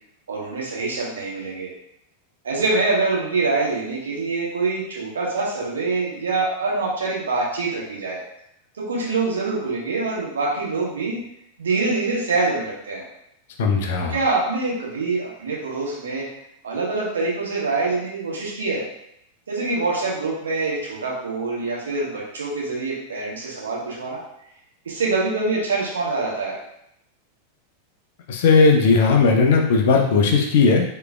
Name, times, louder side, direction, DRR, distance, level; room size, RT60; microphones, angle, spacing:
voice 1, 0.3-1.7 2.4-8.2 8.8-11.2 11.6-13.0 14.1-16.2 16.6-18.8 19.5-24.2 24.8-26.6, right 3 dB, 65° right, -4 dB, 1.2 m, -25 dB
voice 2, 13.6-14.2 28.3-30.8, left 4 dB, 55° left, 2 dB, 0.6 m, -17 dB
4.8 x 3.0 x 2.3 m, 0.78 s
figure-of-eight pair, 90°, 0 cm